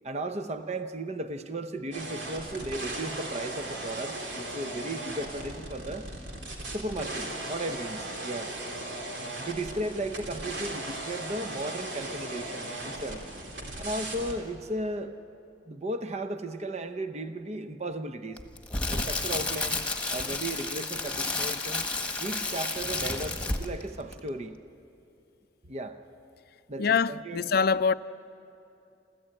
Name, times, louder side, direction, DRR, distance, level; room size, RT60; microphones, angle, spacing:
voice 1, 0.0-6.1 6.7-8.5 9.4-13.2 13.8-15.1 15.7-18.4 18.9-19.8 20.1-21.9 22.2-24.6 25.7-26.0 26.7-27.4, right 1 dB, 35° right, 0.8 m, -35 dB
sound 1, 1.9-14.4, right 1 dB, 75° right, 3.4 m, -37 dB
Crackle, 18.4-23.8 24.1-24.3, left 3 dB, 5° left, 1.5 m, -31 dB
voice 2, 26.8-27.9, left 5 dB, 55° left, 0.5 m, -24 dB
28.0 x 14.5 x 8.9 m
head